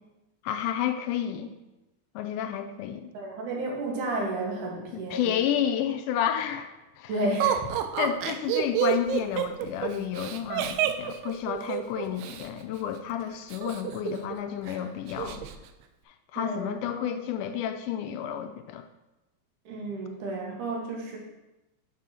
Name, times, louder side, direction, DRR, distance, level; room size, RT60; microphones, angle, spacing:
voice 1, 0.4-1.5 2.2-3.1 4.9-7.2 8.0-15.4 16.3-18.8, left 10 dB, 80° left, 7 dB, 1.9 m, -31 dB
voice 2, 3.1-5.3 7.1-7.7 16.3-17.0 19.7-21.2, right 2 dB, 70° right, -2 dB, 2.8 m, -32 dB
Laughter, 7.4-12.5 13.5-14.4 14.7-14.8 15.1-15.6, right 11 dB, 90° right, 2.3 m, -28 dB
7.4 x 3.7 x 5.6 m, 1.0 s
omnidirectional pair, 3.9 m